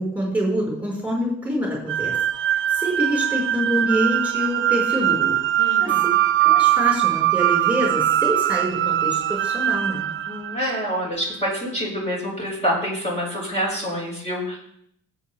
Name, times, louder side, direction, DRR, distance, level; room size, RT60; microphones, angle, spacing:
voice 1, 0.0-2.2 2.4-5.4 5.8-6.0 6.4-10.1, equal, 5° right, -3 dB, 5.2 m, -26 dB
sound 1, 1.9-11.1, right 12 dB, 45° right, 0.4 m, -21 dB
voice 2, 5.6-6.1 10.2-14.6, equal, 20° left, -3 dB, 5.6 m, -27 dB
15.5 x 8.3 x 3.5 m, 0.69 s
cardioid pair, 90°, 30 cm